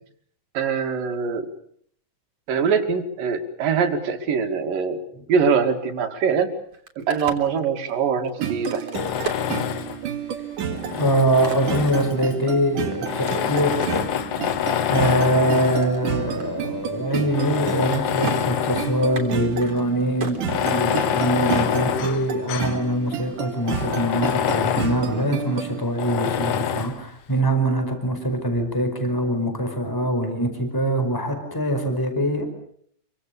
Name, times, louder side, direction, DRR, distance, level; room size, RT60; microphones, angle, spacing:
voice 1, 0.5-1.5 2.5-5.0 5.3-6.5 7.0-8.9, right 6 dB, 85° right, 5 dB, 4.0 m, -23 dB
Crack, 6.6-10.3 10.8-14.1 14.7-16.0 16.4-16.5 16.8-17.1 17.4-17.9 18.2-18.4 19.0-21.3, right 6 dB, 45° right, 4.3 m, -38 dB
sound 1, 8.4-25.8, right 8 dB, 70° right, 3.8 m, -31 dB
Tools, 8.9-10.1 10.7-12.3 13.0-15.9 16.6-16.7 17.3-19.1 19.4-19.5 20.4-22.8 23.2-23.3 23.6-25.0 26.0-27.0, left 9 dB, 65° left, 2.4 m, -26 dB
voice 2, 11.0-14.1 14.9-32.5, right 1 dB, 5° left, 7 dB, 4.8 m, -23 dB
27.5 x 24.5 x 6.9 m, 0.64 s
omnidirectional pair, 3.8 m